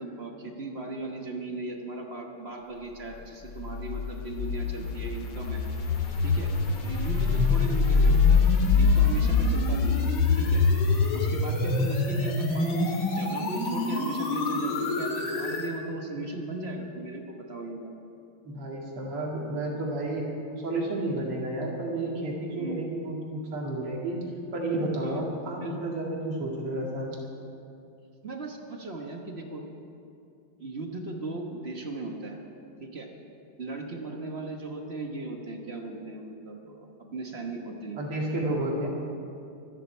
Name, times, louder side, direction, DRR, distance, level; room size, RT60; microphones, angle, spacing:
voice 1, 0.0-5.6 6.2-6.5 6.8-8.4 8.8-10.0 10.3-10.6 11.1-17.9 22.6-22.8 25.0-25.3 25.6-25.7 28.2-29.6 30.6-32.4 32.8-33.1 33.6-38.0, right 2 dB, 35° right, 2 dB, 1.1 m, -37 dB
sound 1, 3.6-15.7, left 4 dB, 70° left, 2.5 m, -25 dB
voice 2, 18.4-20.3 20.6-24.2 24.5-27.1 38.0-38.9, right 2 dB, 80° right, -2 dB, 3.1 m, -31 dB
24.0 x 10.5 x 4.5 m, 2.5 s
omnidirectional pair, 2.4 m